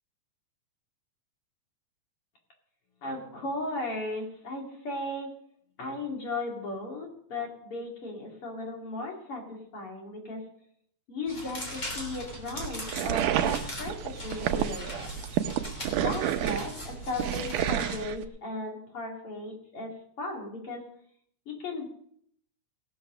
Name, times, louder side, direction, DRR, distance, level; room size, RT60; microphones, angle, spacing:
voice 1, 3.0-5.3 5.8-9.4 9.7-10.4 11.1-13.9 14.2-15.2 15.9-19.9 20.2-20.8 21.5-21.9, left 2 dB, 45° left, 0 dB, 3.4 m, -36 dB
sound 1, 11.3-18.0, equal, 25° left, 3.3 m, -40 dB
sound 2, 11.8-18.3, right 10 dB, 90° right, 2.3 m, -30 dB
18.0 x 7.0 x 6.3 m, 0.66 s
omnidirectional pair, 3.6 m